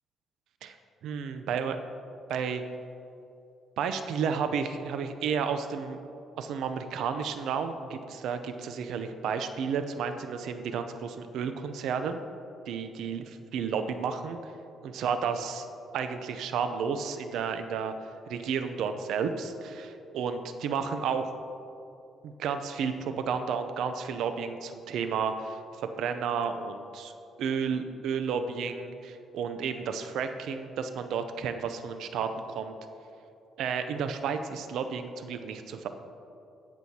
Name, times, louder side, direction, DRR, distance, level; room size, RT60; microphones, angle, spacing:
voice 1, 1.0-1.8 2.3-2.6 3.8-6.0 6.4-12.2 12.7-14.5 14.8-15.7 15.9-21.3 22.2-27.1 27.4-32.7 33.6-35.9, right 6 dB, 80° right, 8 dB, 0.5 m, -32 dB
18.5 x 6.3 x 2.8 m, 2.7 s
cardioid pair, 90°, 0 cm